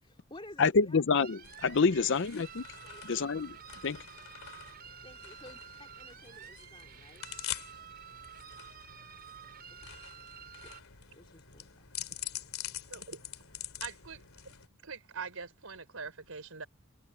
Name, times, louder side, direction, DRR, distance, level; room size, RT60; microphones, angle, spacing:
voice 1, 0.0-1.0 2.8-3.3 5.0-7.3 10.6-10.8 11.1-11.8, left 1 dB, 25° left, 2.8 m, -53 dB
voice 2, 0.6-2.6 3.1-3.5 3.8-4.0, left 4 dB, 60° left, 0.6 m, -27 dB
sound 1, 1.2-10.8, right 9 dB, 45° right, 6.5 m, -50 dB
sound 2, 1.4-14.7, left 12 dB, 90° left, 2.8 m, -46 dB
voice 3, 13.8-14.2 14.5-14.6 14.9-16.7, right 5 dB, 85° right, 3.8 m, -43 dB
head